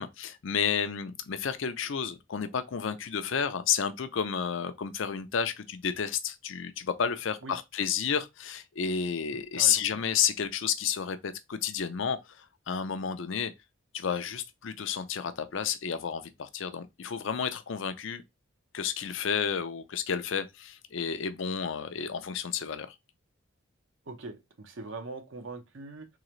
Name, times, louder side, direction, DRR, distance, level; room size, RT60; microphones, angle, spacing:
voice 1, 0.0-13.5 13.9-18.2 18.7-22.9, left 7 dB, 65° left, 0.5 m, -31 dB
voice 2, 9.3-9.8 24.1-26.1, right 3 dB, 65° right, 0.8 m, -42 dB
3.7 x 2.9 x 3.1 m
head